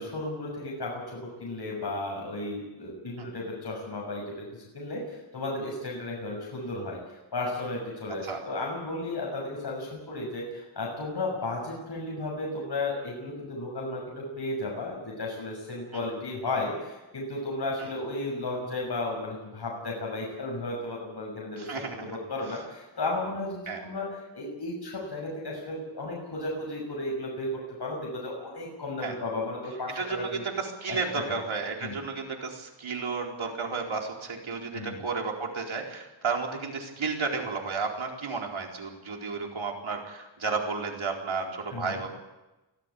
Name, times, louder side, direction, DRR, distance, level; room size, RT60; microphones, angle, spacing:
voice 1, 0.0-4.5 4.7-7.0 7.3-27.5 27.8-30.4 30.9-31.4 31.8-32.0 34.7-35.0 41.7-42.0, left 2 dB, 55° left, -2 dB, 6.7 m, -34 dB
voice 2, 21.6-22.2 23.7-23.8 29.0-29.1 29.9-42.1, right 4 dB, 75° right, 1 dB, 4.4 m, -32 dB
24.0 x 15.5 x 8.4 m, 1.0 s
wide cardioid pair, 105°, 48 cm